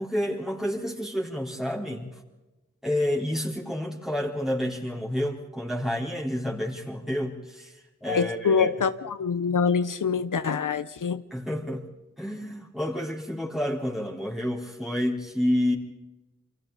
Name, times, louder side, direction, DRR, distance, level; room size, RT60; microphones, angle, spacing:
voice 1, 0.0-2.1 2.8-8.7 11.3-11.8 12.2-15.8, left 1 dB, ahead, -2 dB, 4.1 m, -29 dB
voice 2, 8.1-11.2, left 6 dB, 85° left, 12 dB, 0.8 m, -25 dB
28.5 x 24.5 x 4.1 m, 1.1 s
cardioid pair, 45°, 31 cm